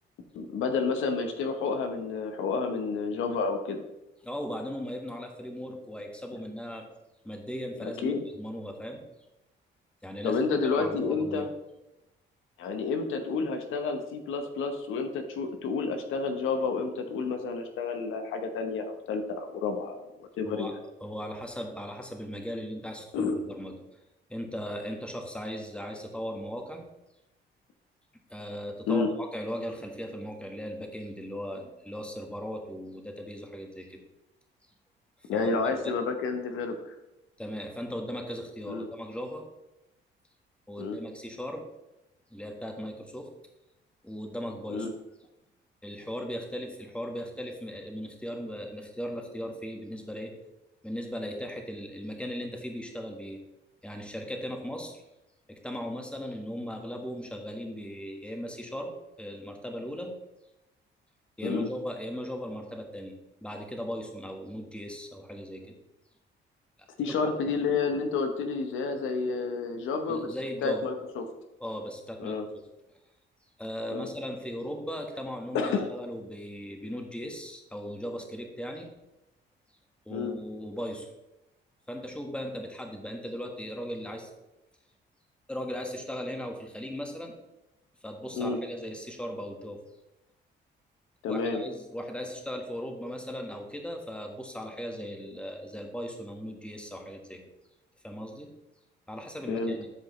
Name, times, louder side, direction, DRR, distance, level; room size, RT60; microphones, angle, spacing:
voice 1, 0.3-3.8 7.8-8.2 10.2-11.5 12.6-20.7 23.1-23.4 28.9-29.1 35.3-36.9 38.7-38.9 40.8-41.0 44.7-44.9 61.4-61.7 67.0-70.3 70.6-71.2 72.2-72.4 73.9-74.1 75.5-75.9 80.1-80.3 88.4-88.6 91.2-91.6 99.5-99.7, left 4 dB, 90° left, 6 dB, 1.0 m, -30 dB
voice 2, 4.2-6.9 7.2-9.0 10.0-11.5 20.4-20.7 21.0-23.7 24.3-26.8 28.3-34.0 35.3-35.9 37.4-39.4 40.7-41.6 42.3-43.3 44.0-44.9 45.8-50.3 50.8-53.4 53.8-55.0 55.5-58.9 59.2-60.1 61.4-63.1 63.4-65.8 66.8-66.9 70.1-70.8 71.6-72.4 73.6-78.9 80.0-81.1 81.9-84.3 85.5-87.3 88.0-89.8 91.3-97.4 98.0-98.5 99.1-99.9, equal, 5° left, 3 dB, 1.5 m, -37 dB
12.0 x 5.0 x 3.2 m, 0.93 s
cardioid pair, 90°, 20 cm